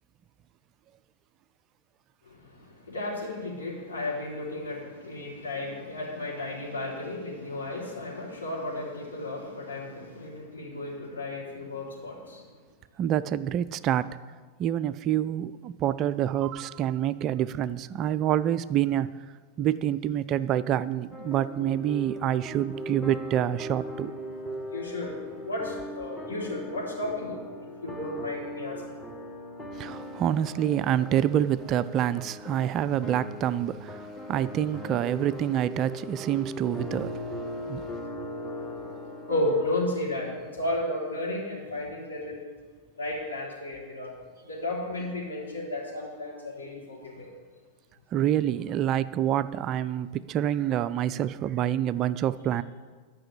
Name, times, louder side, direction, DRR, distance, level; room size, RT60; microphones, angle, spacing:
voice 1, 2.3-12.4 24.7-25.1 25.4-27.4 27.8-28.9 39.3-42.4 43.0-44.1 44.4-47.3, left 1 dB, 75° left, -5 dB, 3.9 m, -33 dB
voice 2, 13.0-14.1 14.6-19.1 19.6-24.1 29.8-37.1 37.7-37.8 48.1-52.6, right 11 dB, 35° right, 15 dB, 0.3 m, -27 dB
sound 1, 21.1-39.7, left 1 dB, 10° left, 1.3 m, -39 dB
11.5 x 6.1 x 7.6 m, 1.5 s
figure-of-eight pair, 90°, 0 cm